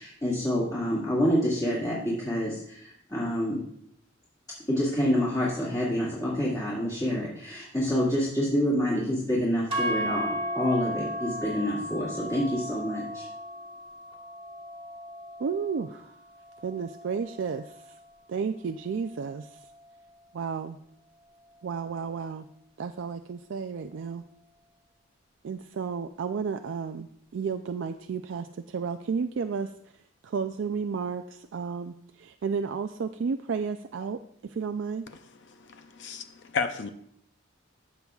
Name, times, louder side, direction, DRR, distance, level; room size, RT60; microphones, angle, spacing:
voice 1, 0.0-3.6 4.7-13.2, equal, 20° left, -7 dB, 2.0 m, -27 dB
sound 1, 9.7-17.9, equal, 30° right, 1.3 m, -35 dB
voice 2, 15.4-16.1 16.6-18.0 18.3-19.7 20.3-20.8 21.6-22.5 22.8-24.2 25.4-29.7 30.2-35.1, right 5 dB, 65° right, 7 dB, 0.4 m, -32 dB
voice 3, 35.6-36.9, left 5 dB, 60° left, 8 dB, 0.6 m, -32 dB
14.0 x 6.9 x 2.4 m, 0.70 s
head